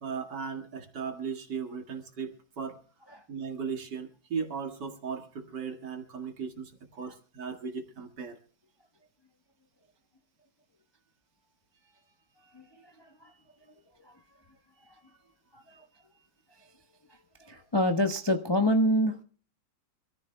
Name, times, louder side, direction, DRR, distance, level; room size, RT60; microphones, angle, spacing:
voice 1, 0.0-2.8 3.3-8.4, right 6 dB, 55° right, 5 dB, 2.4 m, -37 dB
voice 2, 12.4-13.3 14.0-14.2 14.8-15.0 15.5-15.9 16.6-16.7 17.1-19.2, equal, 25° left, 5 dB, 0.6 m, -28 dB
26.0 x 14.5 x 2.2 m, 0.43 s
omnidirectional pair, 2.2 m